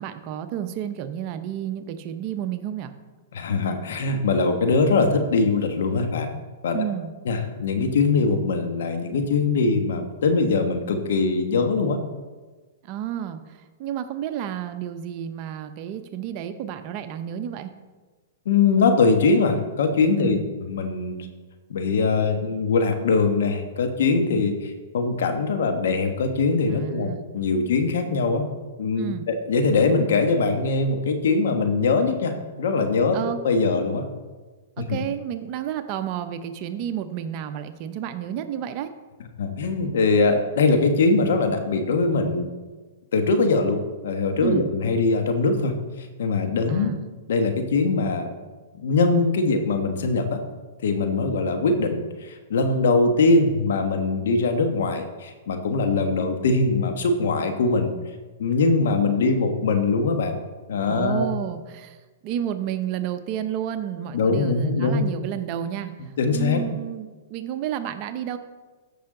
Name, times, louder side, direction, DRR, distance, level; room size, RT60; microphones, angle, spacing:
voice 1, 0.0-2.9 6.7-7.1 12.9-13.4 13.8-17.7 20.2-20.5 26.7-27.2 29.0-29.3 33.1-33.4 34.8-38.9 44.4-44.7 46.7-47.0 60.9-62.0 62.2-65.9 66.3-68.4, right 10 dB, 40° right, 9 dB, 0.8 m, -31 dB
voice 2, 3.3-6.3 6.6-6.8 7.2-12.0 18.4-21.2 21.7-27.1 27.3-28.4 28.8-33.2 33.4-34.0 34.8-35.0 39.4-42.5 43.1-45.7 46.2-47.0 47.3-48.3 48.8-50.4 50.8-57.9 58.4-60.4 60.7-61.3 64.1-65.0 66.2-66.6, left 3 dB, 70° left, 6 dB, 1.3 m, -22 dB
14.0 x 5.6 x 3.9 m, 1.3 s
hypercardioid pair, 130°, 0 cm